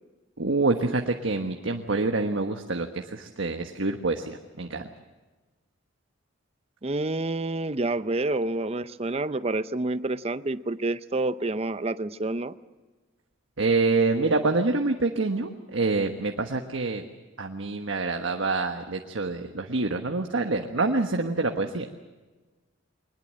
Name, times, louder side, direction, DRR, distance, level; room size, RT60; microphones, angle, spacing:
voice 1, 0.4-4.8 13.6-17.0 17.4-21.9, right 3 dB, 85° right, 4 dB, 1.3 m, -26 dB
voice 2, 6.8-12.6, right 2 dB, 30° right, 13 dB, 0.6 m, -28 dB
23.0 x 20.5 x 7.6 m, 1.3 s
head